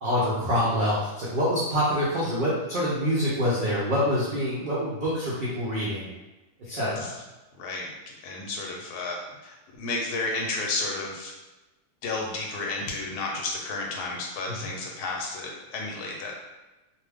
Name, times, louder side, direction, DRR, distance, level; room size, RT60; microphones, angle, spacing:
voice 1, 0.0-6.1 6.7-7.1 14.6-14.7, equal, 65° right, -7 dB, 0.5 m, -26 dB
voice 2, 6.7-7.1 7.5-9.2 9.4-11.3 12.0-16.3, left 3 dB, 75° left, -1 dB, 1.1 m, -32 dB
2.6 x 2.2 x 3.4 m, 1.1 s
omnidirectional pair, 1.7 m